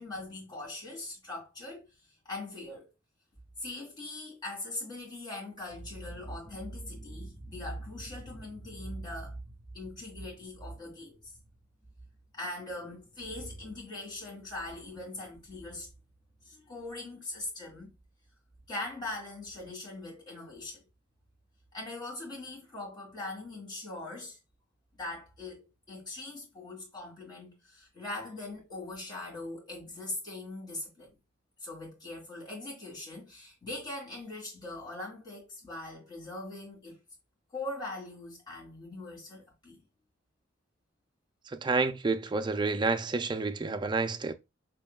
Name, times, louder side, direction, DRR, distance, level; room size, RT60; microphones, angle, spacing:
voice 1, 0.0-1.8 2.2-2.9 3.6-11.3 12.3-15.9 16.4-17.9 18.7-20.8 21.7-24.4 25.0-31.2 31.6-37.0 37.5-39.8, left 2 dB, 25° left, 2.2 m, -41 dB
voice 2, 41.6-44.3, right 3 dB, 25° right, 0.4 m, -29 dB
6.9 x 2.9 x 2.3 m
head